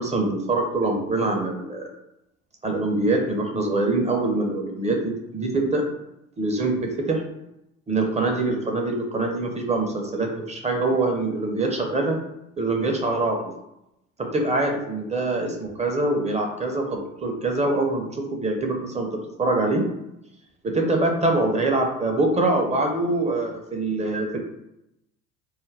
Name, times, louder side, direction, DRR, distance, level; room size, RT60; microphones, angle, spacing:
voice 1, 0.0-1.9 2.6-5.8 6.4-7.2 7.9-12.2 12.6-13.5 14.2-19.1 19.4-19.8 20.6-24.4, right 2 dB, 15° right, 2 dB, 0.5 m, -24 dB
2.3 x 2.1 x 3.2 m, 0.86 s
hypercardioid pair, 70°, 41 cm